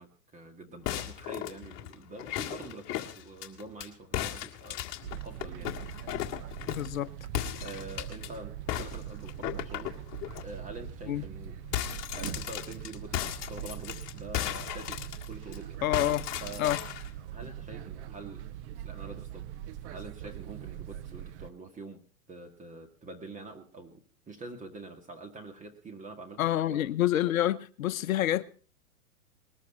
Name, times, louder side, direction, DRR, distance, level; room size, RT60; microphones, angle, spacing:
voice 1, 0.0-5.9 7.6-9.9 10.4-11.6 12.1-15.8 16.4-16.8 17.3-18.5 18.8-19.5 19.8-26.9, right 2 dB, 15° right, 1.9 m, -46 dB
sound 1, 0.9-3.9 4.1-7.0 7.3-8.3 8.7-10.4 10.9-11.0 11.3-15.6 15.9-17.1, left 13 dB, 35° left, 1.9 m, -36 dB
sound 2, 5.0-21.5, right 11 dB, 45° right, 1.1 m, -42 dB
voice 2, 6.7-7.1 11.1-11.2 15.8-16.3 16.6-16.8 26.4-28.4, left 13 dB, 60° left, 0.9 m, -27 dB
20.5 x 13.5 x 4.2 m
hypercardioid pair, 115°, 46 cm